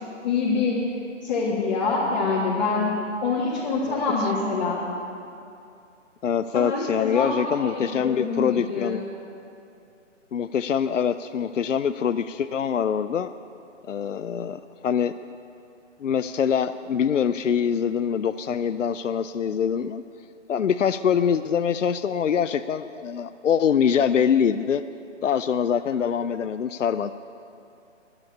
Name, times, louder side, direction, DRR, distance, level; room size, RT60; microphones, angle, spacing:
voice 1, 0.2-0.8 1.2-2.9 3.2-4.8 6.5-9.0, left 4 dB, 35° left, -5 dB, 1.8 m, -25 dB
voice 2, 3.9-4.3 6.2-9.0 10.3-13.3 13.9-15.1 16.0-20.0 20.5-24.8 25.2-27.1, left 7 dB, 75° left, 11 dB, 0.5 m, -24 dB
9.9 x 9.7 x 9.7 m, 2.6 s
figure-of-eight pair, 140°, 38 cm